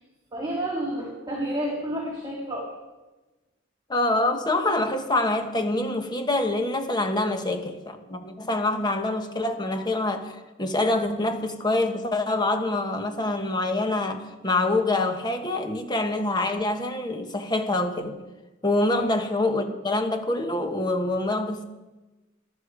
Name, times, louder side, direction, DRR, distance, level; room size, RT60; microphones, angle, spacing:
voice 1, 0.3-2.7 18.9-19.2, right 1 dB, 25° right, 3.1 m, -30 dB
voice 2, 3.9-18.2 18.6-21.6, left 2 dB, 20° left, 1.3 m, -25 dB
19.0 x 12.0 x 4.9 m
head